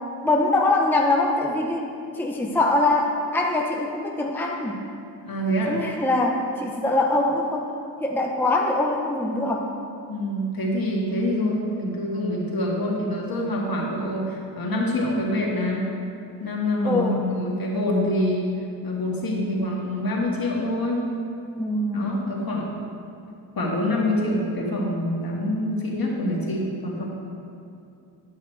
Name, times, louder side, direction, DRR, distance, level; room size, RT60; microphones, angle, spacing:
voice 1, 0.2-1.9 2.1-4.9 5.7-7.7 8.0-9.7 16.8-17.2 21.6-22.3, left 2 dB, 5° left, 0 dB, 0.7 m, -23 dB
voice 2, 5.3-5.8 10.1-15.9 16.4-18.5 18.8-21.0 21.9-22.7 23.6-27.0, left 1 dB, 50° left, -3 dB, 2.1 m, -26 dB
10.5 x 5.6 x 4.6 m, 2.6 s
cardioid pair, 60°, 44 cm